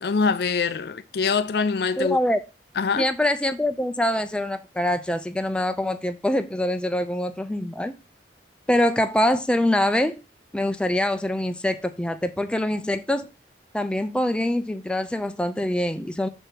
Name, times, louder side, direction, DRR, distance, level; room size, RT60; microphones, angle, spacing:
voice 1, 0.0-2.2 2.8-3.1, left 5 dB, 60° left, 0.5 m, -24 dB
voice 2, 2.0-2.4 3.0-7.9 8.7-10.2 10.5-13.3 13.7-16.3, left 1 dB, 5° left, 0.4 m, -24 dB
6.3 x 4.8 x 4.5 m
head